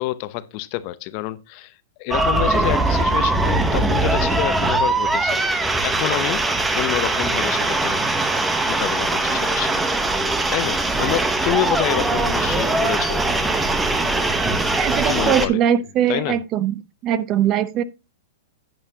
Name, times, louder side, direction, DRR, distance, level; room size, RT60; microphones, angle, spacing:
voice 1, 0.0-1.7 2.0-6.5 6.7-8.2 8.7-13.3 15.0-15.6 16.1-16.4, left 16 dB, 40° left, 0.7 m, -28 dB
sound 1, 2.1-15.5, right 2 dB, 10° right, 0.9 m, -21 dB
voice 2, 14.8-17.8, right 10 dB, 30° right, 0.7 m, -21 dB
11.0 x 8.9 x 2.8 m
hypercardioid pair, 150°, 0 cm